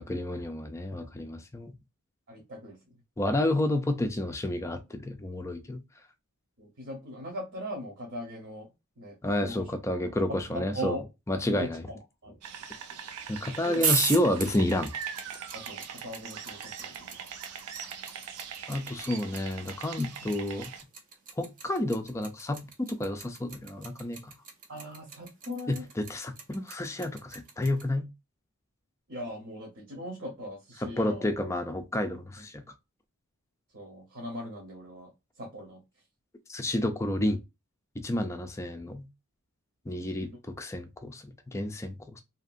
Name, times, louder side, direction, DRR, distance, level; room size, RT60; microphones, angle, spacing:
voice 1, 0.0-1.7 3.2-5.8 9.2-11.0 11.3-11.8 13.3-14.9 18.7-20.7 21.4-22.6 23.0-24.3 25.7-28.1 30.8-32.6 36.5-37.4 38.0-39.1 39.9-42.2, left 1 dB, 15° left, 0.3 m, -30 dB
voice 2, 2.3-2.9 6.6-8.7 9.0-9.7 10.3-11.1 11.5-12.4 13.6-13.8 15.5-17.2 20.0-20.3 24.7-25.9 29.1-31.3 32.4-32.5 33.7-35.1 35.4-35.8 40.0-40.4, equal, 55° right, 1.0 m, -40 dB
sound 1, 12.4-20.8, right 7 dB, 90° right, 0.4 m, -42 dB
sound 2, 13.7-27.8, right 6 dB, 35° right, 0.5 m, -35 dB
2.8 x 2.5 x 2.5 m
head